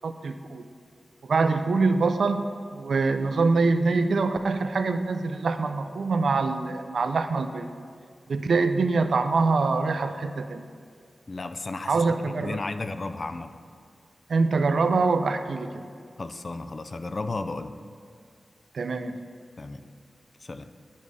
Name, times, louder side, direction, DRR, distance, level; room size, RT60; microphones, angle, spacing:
voice 1, 0.0-0.7 1.2-7.7 8.3-10.7 11.9-12.6 14.3-15.8 18.7-19.2, right 3 dB, 85° right, 8 dB, 0.4 m, -24 dB
voice 2, 11.3-12.0 12.4-13.6 16.2-17.8 19.6-19.8 20.4-20.7, left 3 dB, 45° left, 10 dB, 0.4 m, -34 dB
10.0 x 5.3 x 4.9 m, 2.2 s
wide cardioid pair, 125°, 0 cm